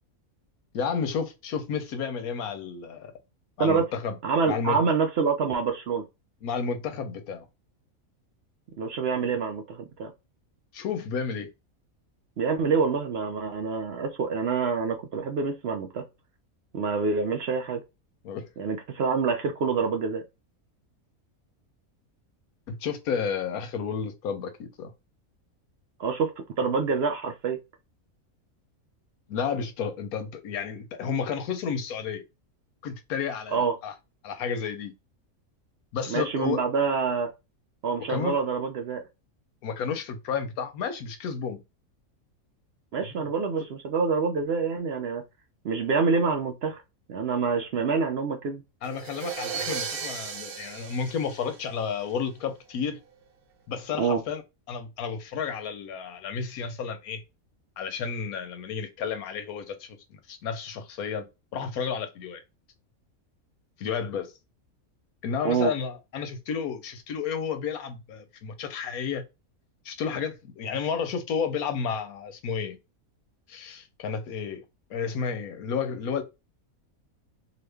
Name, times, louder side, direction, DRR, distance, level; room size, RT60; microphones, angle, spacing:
voice 1, 0.7-3.1 3.6-4.1 4.5-4.8 6.4-7.5 10.7-11.5 18.2-18.5 22.7-24.9 29.3-32.2 32.8-33.9 34.2-34.9 35.9-36.6 38.1-38.3 39.6-41.6 43.0-43.3 48.8-53.0 53.7-54.4 54.7-57.2 57.8-61.3 61.5-62.4 63.8-64.3 65.2-69.2 69.8-72.8 73.5-74.6 74.9-76.2, left 6 dB, 90° left, 1.2 m, -31 dB
voice 2, 4.2-6.0 8.8-10.1 12.4-16.0 16.7-17.8 18.6-20.2 26.0-26.3 26.6-27.6 33.5-33.8 36.1-37.3 37.8-39.1 42.9-45.2 45.6-46.8 47.1-48.6 54.0-54.2 65.4-65.7, right 5 dB, 65° right, 0.6 m, -26 dB
sound 1, 48.8-52.1, right 7 dB, 85° right, 1.2 m, -35 dB
2.9 x 2.4 x 3.3 m
omnidirectional pair, 1.5 m